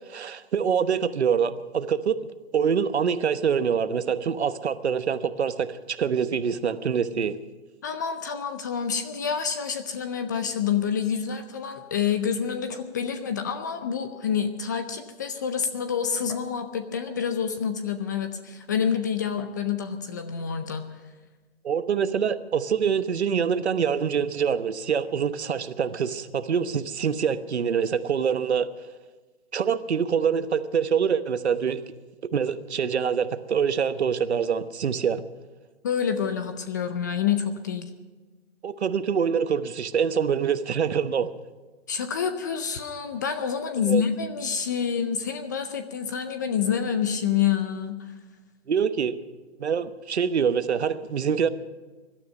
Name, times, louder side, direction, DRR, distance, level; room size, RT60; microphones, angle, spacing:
voice 1, 0.1-2.2 2.5-7.4 21.6-28.7 29.5-31.8 32.3-35.2 38.6-41.3 43.8-44.0 48.7-49.1 49.6-51.5, right 7 dB, 65° right, 12 dB, 1.1 m, -25 dB
voice 2, 7.8-20.9 35.8-37.9 41.9-48.1, left 7 dB, 15° left, 9 dB, 0.5 m, -28 dB
21.0 x 12.5 x 5.3 m, 1.3 s
hypercardioid pair, 145°, 35 cm